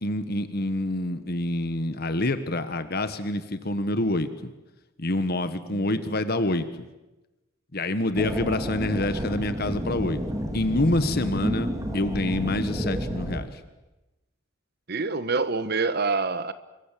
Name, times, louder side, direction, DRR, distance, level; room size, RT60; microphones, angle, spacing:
voice 1, 0.0-4.5 5.0-6.9 7.7-10.2 10.5-13.6, left 1 dB, 50° left, 1.5 m, -27 dB
voice 2, 5.7-6.0 14.9-16.5, right 4 dB, 50° right, 1.2 m, -26 dB
sound 1, 8.1-13.4, equal, 15° right, 2.7 m, -30 dB
27.5 x 23.0 x 7.6 m
head